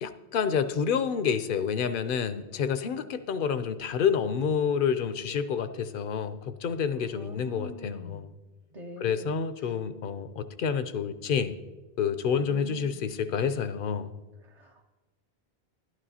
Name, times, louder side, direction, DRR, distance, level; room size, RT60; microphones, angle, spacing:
voice 1, 0.0-8.3 9.0-11.6 12.0-14.1, left 7 dB, 65° left, 11 dB, 0.7 m, -28 dB
voice 2, 7.1-8.3 8.7-9.5 12.3-13.0 14.4-14.8, equal, 45° right, 1 dB, 0.7 m, -43 dB
11.5 x 11.0 x 2.7 m, 1.2 s
omnidirectional pair, 1.0 m